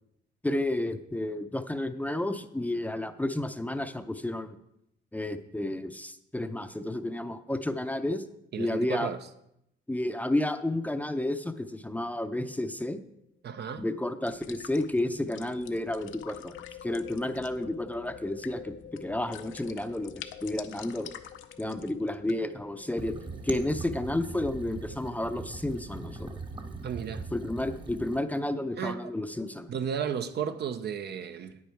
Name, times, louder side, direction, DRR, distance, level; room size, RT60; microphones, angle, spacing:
voice 1, 0.4-4.6 5.1-8.2 8.6-9.1 9.9-13.0 13.8-20.1 20.4-21.1 21.6-23.1 23.4-26.4 27.3-29.7, left 1 dB, 10° left, 0.6 m, -31 dB
voice 2, 8.5-9.2 13.4-13.8 26.8-27.3 28.8-29.1 29.7-31.6, right 7 dB, 60° right, 0.7 m, -33 dB
sound 1, 12.2-12.5 12.8-12.9 15.4-26.7, left 7 dB, 50° left, 0.9 m, -50 dB
sound 2, 14.3-22.3, left 10 dB, 80° left, 0.7 m, -48 dB
sound 3, 23.0-28.2, right 3 dB, 25° right, 1.1 m, -40 dB
9.4 x 8.6 x 4.5 m
cardioid pair, 90°, 20 cm